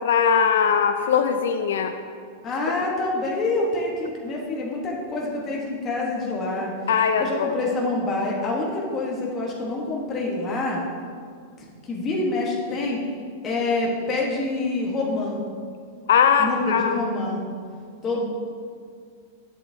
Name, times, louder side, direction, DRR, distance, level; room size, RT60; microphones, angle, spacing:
voice 1, 0.0-1.9 6.9-7.5 16.1-17.0, left 7 dB, 85° left, 7 dB, 0.5 m, -20 dB
voice 2, 2.4-6.7 7.2-10.8 11.8-13.0 13.4-15.4 16.4-17.4 18.0-18.2, left 2 dB, 20° left, -2 dB, 1.1 m, -26 dB
11.5 x 7.2 x 2.7 m, 2.1 s
supercardioid pair, 165°, 0 cm